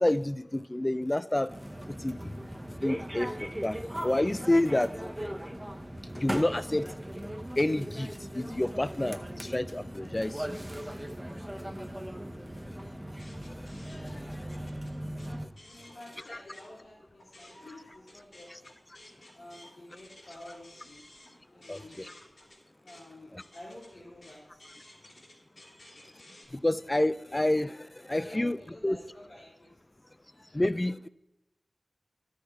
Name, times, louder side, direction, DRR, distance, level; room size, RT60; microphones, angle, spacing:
voice 1, 0.0-1.5 2.0-2.2 2.8-3.8 4.0-4.9 6.2-6.9 7.6-8.1 8.4-10.3 16.3-16.4 21.7-22.1 26.6-27.7 28.1-28.6 28.8-29.0 30.5-31.1, left 1 dB, 25° left, 16 dB, 0.4 m, -28 dB
sound 1, 1.5-15.5, equal, 10° right, 0.8 m, -38 dB
sound 2, 13.1-16.7 17.1-26.4, left 1 dB, 70° left, 3.7 m, -55 dB
voice 2, 15.6-18.6 19.3-21.0 21.5-22.0 22.8-24.4 28.2-29.7, left 1 dB, 85° left, -7 dB, 2.7 m, -49 dB
12.0 x 6.4 x 4.7 m, 0.92 s
wide cardioid pair, 70°, 0 cm